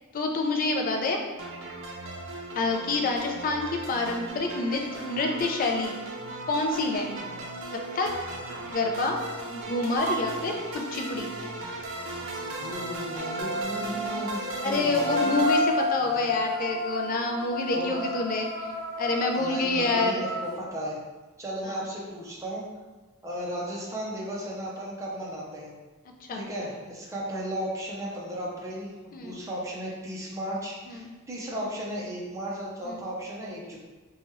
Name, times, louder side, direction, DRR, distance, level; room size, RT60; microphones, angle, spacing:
voice 1, 0.1-1.2 2.6-5.9 6.5-7.1 7.9-8.1 8.7-9.2 9.5-11.3 14.6-18.7 19.0-20.2 26.3-26.5 29.1-29.4 30.9-31.1 32.8-33.1, left 3 dB, 40° left, 2 dB, 0.4 m, -27 dB
sound 1, 1.4-15.6, right 1 dB, 65° right, 0.5 m, -37 dB
sound 2, 10.0-10.2 13.1-20.6, left 1 dB, 80° left, 0.8 m, -31 dB
voice 2, 12.4-15.4 16.0-16.1 17.7-18.1 19.4-21.0 21.4-22.6 23.2-25.7 26.3-33.8, equal, 15° right, -5 dB, 0.6 m, -35 dB
3.0 x 2.3 x 2.9 m, 1.3 s
head